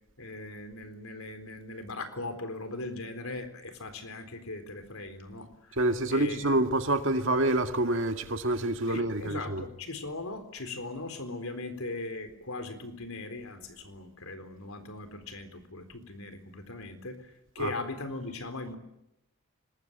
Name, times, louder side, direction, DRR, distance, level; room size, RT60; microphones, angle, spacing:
voice 1, 0.2-5.8 6.1-6.6 8.9-18.7, left 2 dB, 90° left, 4.0 m, -39 dB
voice 2, 5.8-9.6 17.6-17.7, right 1 dB, 65° right, 2.1 m, -27 dB
25.5 x 20.5 x 9.0 m
head